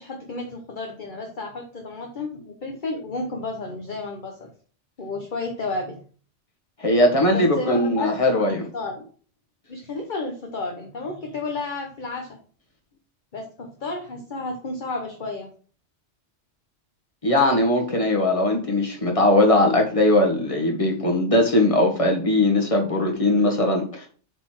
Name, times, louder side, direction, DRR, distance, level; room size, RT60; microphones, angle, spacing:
voice 1, 0.0-4.5 5.0-6.0 7.3-9.0 9.7-12.4 13.3-15.5, left 3 dB, 45° left, 1 dB, 1.2 m, -32 dB
voice 2, 6.8-8.6 17.2-24.1, left 1 dB, 30° left, 1 dB, 1.8 m, -20 dB
8.1 x 4.3 x 4.6 m, 0.42 s
omnidirectional pair, 1.2 m